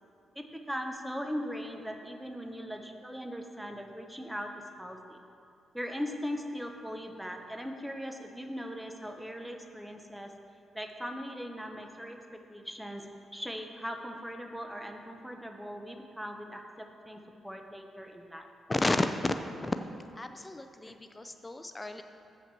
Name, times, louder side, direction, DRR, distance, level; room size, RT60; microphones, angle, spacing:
voice 1, 0.4-5.2 5.7-10.3 10.7-12.2 12.5-13.0 13.3-18.5 20.8-21.0, equal, 5° right, 4 dB, 0.9 m, -39 dB
voice 2, 18.7-19.8 20.2-22.0, left 2 dB, 20° left, 8 dB, 0.4 m, -32 dB
7.2 x 5.8 x 6.0 m, 2.6 s
cardioid pair, 65°, 0 cm